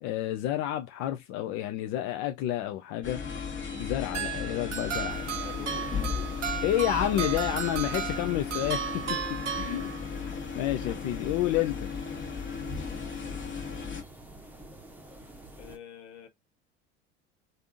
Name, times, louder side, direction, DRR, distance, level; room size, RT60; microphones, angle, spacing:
voice 1, 0.0-3.2 3.8-5.3 6.6-9.2 9.5-9.9 10.2-11.9, left 13 dB, 50° left, 0.5 m, -30 dB
sound 1, 3.0-14.0, left 6 dB, 35° left, 1.2 m, -36 dB
sound 2, 4.1-10.3, right 8 dB, 90° right, 0.7 m, -35 dB
sound 3, 5.1-15.8, right 1 dB, 5° right, 0.8 m, -47 dB
voice 2, 5.4-6.3 15.6-16.3, left 7 dB, 70° left, 1.0 m, -45 dB
3.3 x 2.6 x 2.4 m
figure-of-eight pair, 70°, 35 cm